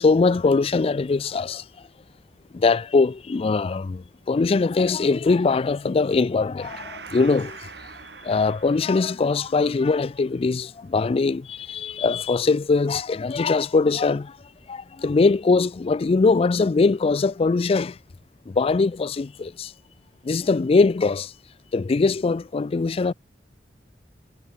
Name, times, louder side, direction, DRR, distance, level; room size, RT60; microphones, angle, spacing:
voice 1, 0.0-1.6 2.5-7.7 8.2-14.4 14.7-18.0 18.5-19.7 20.2-21.3 21.7-23.1, left 4 dB, 35° left, 0.3 m, -22 dB
Gong, 6.6-13.6, right 5 dB, 70° right, 3.6 m, -45 dB
head